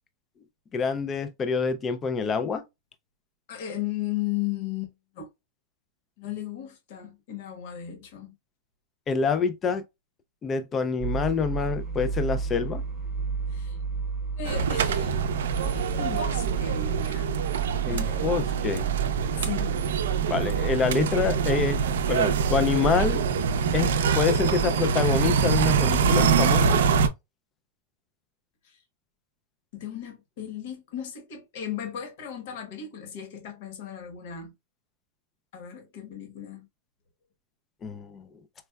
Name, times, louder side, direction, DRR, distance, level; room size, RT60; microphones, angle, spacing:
voice 1, 0.7-2.6 9.1-9.8 10.4-12.8 17.8-18.9 20.3-21.8 22.1-23.3 23.7-26.8 37.8-38.3, left 5 dB, 15° left, 0.3 m, -26 dB
voice 2, 3.5-5.3 6.2-8.3 13.5-13.8 14.4-17.4 17.9-18.8 19.4-19.9 28.6-28.8 29.7-34.5 35.5-36.7, left 10 dB, 50° left, 1.1 m, -36 dB
sound 1, 11.0-17.1, right 4 dB, 5° right, 0.8 m, -32 dB
sound 2, 14.4-27.1, right 6 dB, 85° right, 0.4 m, -24 dB
4.3 x 2.1 x 2.2 m
supercardioid pair, 170°, 0 cm